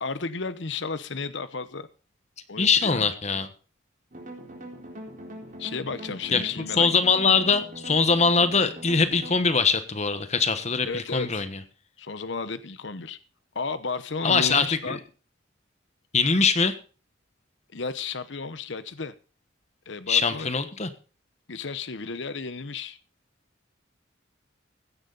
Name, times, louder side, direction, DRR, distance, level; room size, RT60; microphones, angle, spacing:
voice 1, 0.0-1.9 2.5-3.1 5.6-6.9 10.9-11.5 12.0-13.2 13.5-15.0 17.7-19.1 19.9-20.5 21.5-23.0, left 4 dB, 65° left, 13 dB, 0.9 m, -33 dB
voice 2, 2.6-3.5 6.3-6.4 6.8-11.5 14.2-15.0 16.1-16.7 20.1-20.9, left 5 dB, 35° left, 10 dB, 1.2 m, -22 dB
sound 1, 4.1-9.6, right 1 dB, 40° right, 4.1 m, -42 dB
16.0 x 11.0 x 4.0 m, 0.36 s
head